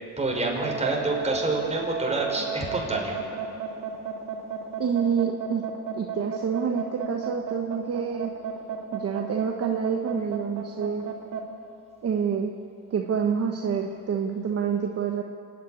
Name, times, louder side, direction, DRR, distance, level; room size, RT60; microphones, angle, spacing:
voice 1, 0.2-3.2, right 2 dB, 20° right, -1 dB, 5.6 m, -27 dB
sound 1, 0.6-11.4, right 7 dB, 80° right, 2.5 m, -33 dB
voice 2, 4.8-5.6 5.9-8.3 8.9-11.0 12.0-12.5 12.9-15.2, right 7 dB, 50° right, 3 dB, 1.3 m, -27 dB
27.0 x 10.0 x 9.8 m, 2.5 s
cardioid pair, 90°, 30 cm